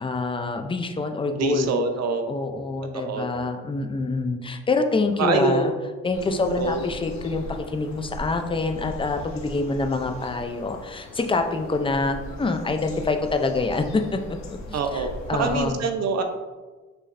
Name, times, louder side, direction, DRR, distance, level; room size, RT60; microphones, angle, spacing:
voice 1, 0.0-1.7 2.3-5.7 6.0-15.8, left 3 dB, 15° left, 5 dB, 0.5 m, -26 dB
voice 2, 1.4-2.2 2.9-3.3 5.2-5.7 6.2-6.9 14.7-16.2, right 4 dB, 60° right, 6 dB, 0.7 m, -25 dB
sound 1, 6.1-15.7, left 1 dB, 65° left, 0.9 m, -40 dB
6.7 x 3.1 x 2.6 m, 1.3 s
cardioid pair, 90°, 30 cm